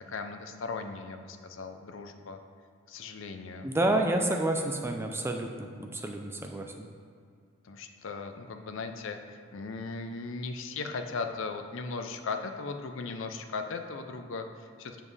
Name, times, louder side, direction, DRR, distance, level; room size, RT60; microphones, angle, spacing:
voice 1, 0.0-2.4 2.9-3.7 7.6-15.0, left 4 dB, 60° left, 6 dB, 0.5 m, -38 dB
voice 2, 3.6-6.9, right 1 dB, 10° right, 3 dB, 0.4 m, -29 dB
7.4 x 7.2 x 3.3 m, 2.3 s
head